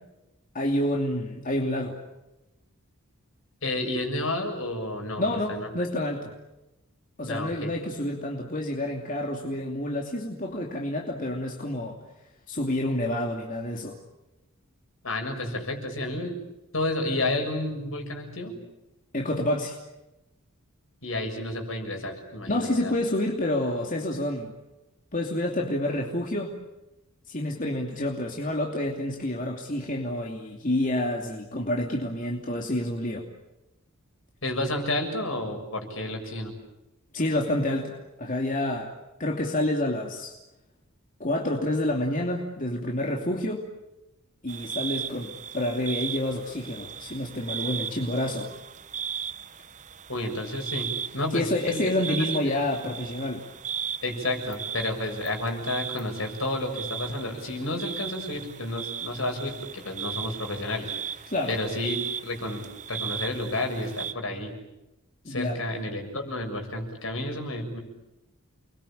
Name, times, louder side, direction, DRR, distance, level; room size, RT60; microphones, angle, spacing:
voice 1, 0.5-2.0 5.2-6.3 7.2-12.0 12.5-14.0 19.1-19.8 22.5-24.5 25.1-26.5 27.3-33.3 37.1-38.9 39.2-40.3 41.2-43.6 44.4-48.5 51.3-53.5 61.3-61.6 65.2-65.6, left 1 dB, 40° left, 1 dB, 2.8 m, -28 dB
voice 2, 3.6-5.7 7.3-7.7 15.0-16.4 16.7-18.6 21.0-22.9 34.4-36.5 50.1-52.6 54.0-61.2 61.5-64.5 65.3-67.8, left 1 dB, 65° left, 4 dB, 7.0 m, -31 dB
sound 1, 44.5-64.1, right 8 dB, 35° right, 1.1 m, -37 dB
29.5 x 22.5 x 8.9 m, 0.97 s
head